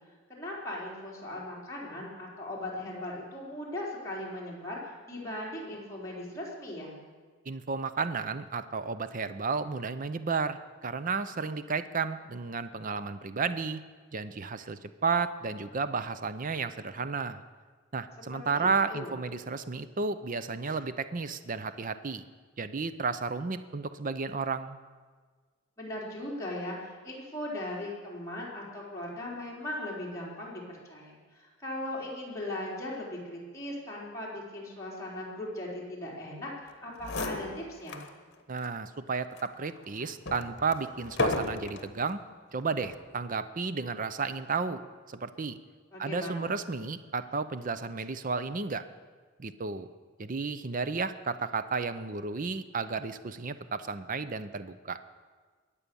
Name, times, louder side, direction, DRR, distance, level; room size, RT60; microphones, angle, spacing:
voice 1, 0.3-7.0 18.3-19.1 25.8-36.5 36.8-38.0 45.9-46.5, left 1 dB, 15° left, -5 dB, 4.0 m, -38 dB
voice 2, 7.5-13.8 14.1-17.4 17.9-22.2 22.6-24.8 38.5-42.2 42.5-44.8 45.1-45.6 46.0-48.8 49.4-49.9 50.2-55.0, right 4 dB, 40° right, 13 dB, 0.6 m, -32 dB
sound 1, 36.7-36.8 37.0-38.1 38.6-38.7 39.3-41.9 42.7-43.1, left 2 dB, 55° left, 1.3 m, -34 dB
22.0 x 8.5 x 7.0 m, 1.5 s
head